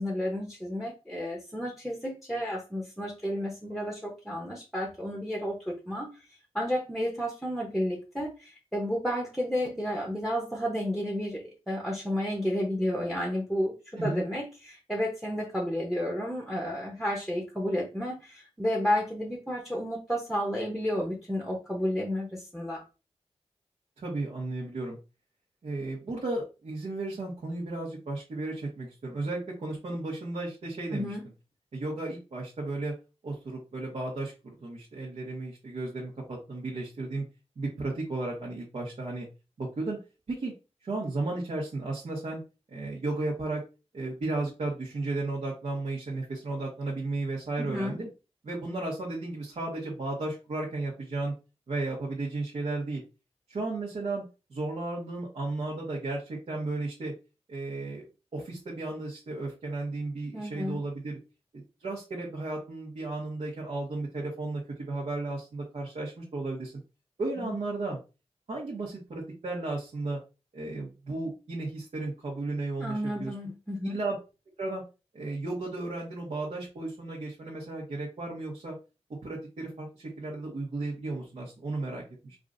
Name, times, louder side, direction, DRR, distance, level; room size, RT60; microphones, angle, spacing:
voice 1, 0.0-6.3 6.5-22.8 30.9-31.2 47.6-48.0 60.3-60.8 67.4-67.6 72.8-74.0, equal, ahead, 0 dB, 0.8 m, -31 dB
voice 2, 24.0-25.0 25.6-31.1 31.7-32.9 33.2-37.2 37.6-39.3 39.6-40.0 40.3-40.5 40.8-42.4 42.7-43.6 43.9-48.1 48.4-51.3 51.7-53.0 53.5-54.2 54.5-57.1 57.5-58.0 58.3-61.2 61.5-66.7 67.2-68.0 68.5-70.2 70.5-73.3 73.8-74.1 74.6-74.8 75.1-78.7 79.2-82.4, right 2 dB, 70° right, -5 dB, 1.3 m, -34 dB
4.8 x 2.6 x 2.5 m, 0.30 s
wide cardioid pair, 125°, 11 cm